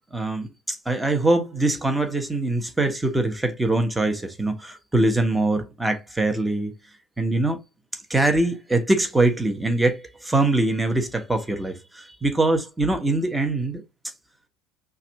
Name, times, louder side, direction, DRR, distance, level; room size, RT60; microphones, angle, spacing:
voice 1, 0.1-6.7 7.2-7.6 7.9-13.8, right 2 dB, 10° right, 1.3 m, -23 dB
5.6 x 2.6 x 3.5 m
figure-of-eight pair, 65°, 0 cm